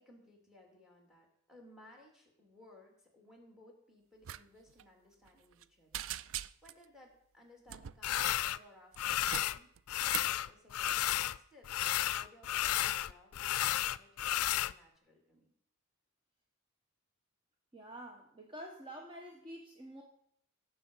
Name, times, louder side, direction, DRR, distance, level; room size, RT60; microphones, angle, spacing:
voice 1, 0.0-9.7 10.1-15.5, left 1 dB, 5° right, 1 dB, 3.2 m, -61 dB
sound 1, 4.2-4.4 4.7-4.8 5.3-5.6 5.9-6.8 7.7-8.4 8.9-10.4 10.8-11.1, right 11 dB, 65° right, 0.4 m, -42 dB
sound 2, 8.0-8.6 9.0-9.6 9.9-11.4 11.6-14.7, left 13 dB, 75° left, 0.4 m, -32 dB
voice 2, 17.7-20.0, equal, 25° right, 1 dB, 1.2 m, -48 dB
17.0 x 6.8 x 5.6 m, 0.71 s
head